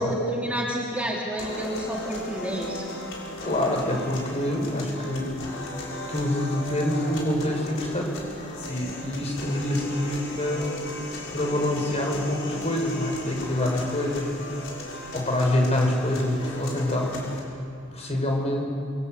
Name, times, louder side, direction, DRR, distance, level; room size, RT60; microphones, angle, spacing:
voice 1, 0.0-2.8, right 1 dB, 5° right, -3 dB, 3.0 m, -29 dB
sound 1, 1.4-17.4, left 1 dB, 65° left, 6.9 m, -37 dB
voice 2, 3.4-5.3 6.1-8.0 8.7-10.7 11.3-14.3 15.1-17.1 17.9-18.6, left 1 dB, 30° left, 1 dB, 6.3 m, -26 dB
28.0 x 24.5 x 8.1 m, 2.5 s
head